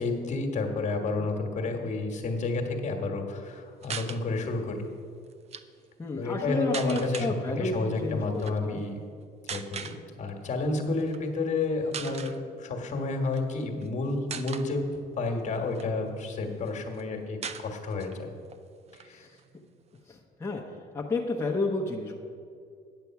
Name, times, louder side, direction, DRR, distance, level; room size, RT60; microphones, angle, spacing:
voice 1, 0.0-4.9 6.2-7.3 7.6-9.0 9.5-14.9 15.2-18.3 19.0-19.3, left 3 dB, 45° left, 3 dB, 1.4 m, -30 dB
sound 1, 3.8-4.2 5.3-5.6 6.7-7.3 8.3-8.5 9.5-10.0 11.0-11.2 11.6-11.7 11.9-12.4 13.2-13.9 14.3-14.7 15.3-16.3 16.7-16.8 16.9-17.0 17.4-18.2 18.5-18.6 18.9-20.0, right 7 dB, 40° right, 0.5 m, -39 dB
voice 2, 6.0-8.8 19.1-19.3 20.1-20.6 20.9-22.2, left 3 dB, 15° left, -2 dB, 0.9 m, -31 dB
9.4 x 6.8 x 5.8 m, 2.3 s
cardioid pair, 110°, 17 cm